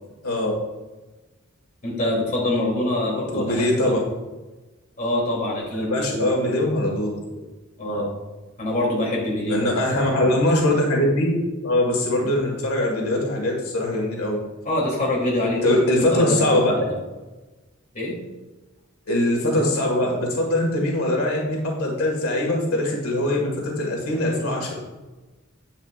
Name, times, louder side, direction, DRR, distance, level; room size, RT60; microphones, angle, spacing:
voice 1, 1.8-4.0 5.0-6.3 7.8-8.1 8.6-9.7 10.0-10.2 14.6-15.8 16.1-16.6 16.9-17.0 17.9-18.2, left 1 dB, 40° left, -4 dB, 2.9 m, -25 dB
voice 2, 3.3-4.0 5.7-7.2 7.8-8.1 9.5-11.3 11.6-14.4 15.6-16.7 19.1-24.8, left 1 dB, 90° left, -1 dB, 1.8 m, -22 dB
9.7 x 9.1 x 2.5 m, 1.2 s
head